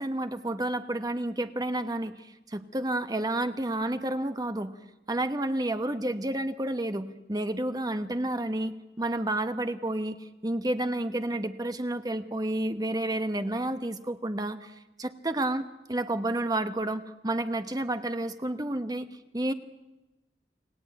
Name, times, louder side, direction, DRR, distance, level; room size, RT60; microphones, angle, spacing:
voice 1, 0.0-4.7 5.1-19.1 19.3-19.5, right 1 dB, 20° right, 9 dB, 1.1 m, -30 dB
30.0 x 19.5 x 9.3 m, 1.1 s
head